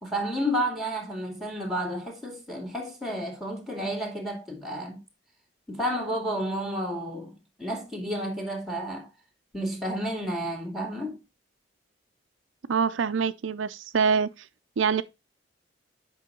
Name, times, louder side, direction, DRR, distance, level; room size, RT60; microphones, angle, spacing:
voice 1, 0.0-5.0 5.7-7.3 7.6-9.1 9.5-11.2, equal, ahead, 2.3 m, -31 dB
voice 2, 12.7-14.3 14.8-15.0, right 6 dB, 85° right, 0.5 m, -25 dB
8.3 x 5.5 x 3.7 m
head